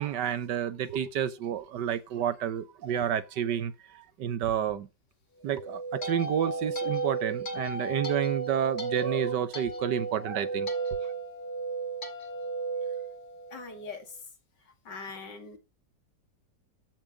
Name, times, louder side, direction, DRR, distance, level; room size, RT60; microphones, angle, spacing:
voice 1, 0.0-4.9 5.4-10.7, right 9 dB, 75° right, 1.5 m, -30 dB
sound 1, 5.5-13.8, right 4 dB, 35° left, 2.1 m, -34 dB
voice 2, 13.5-14.2 14.8-15.6, left 4 dB, 75° left, 2.8 m, -41 dB
14.5 x 8.7 x 5.1 m
omnidirectional pair, 1.9 m